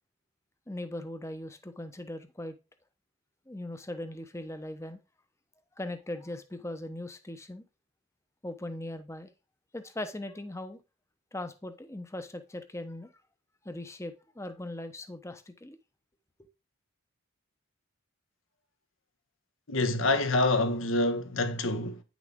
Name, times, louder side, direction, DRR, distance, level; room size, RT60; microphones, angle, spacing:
voice 1, 0.7-2.5 3.5-5.0 5.8-7.6 8.4-9.3 9.7-10.8 11.3-13.1 13.6-15.8, left 1 dB, 15° left, 0.8 m, -39 dB
voice 2, 19.7-22.0, left 2 dB, 70° left, 1.2 m, -27 dB
9.5 x 6.1 x 3.6 m
head